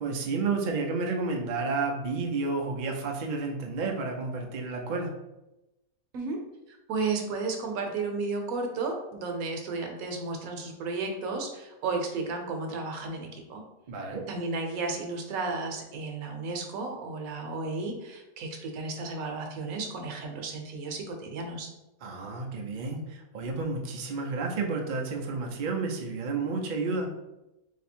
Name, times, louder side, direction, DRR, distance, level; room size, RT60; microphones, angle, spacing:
voice 1, 0.0-5.1 13.9-14.2 22.0-27.1, right 3 dB, 85° right, 2 dB, 0.4 m, -31 dB
voice 2, 6.7-13.6 14.3-21.7, right 3 dB, 70° right, 3 dB, 1.1 m, -33 dB
3.3 x 2.8 x 4.3 m, 0.97 s
omnidirectional pair, 1.6 m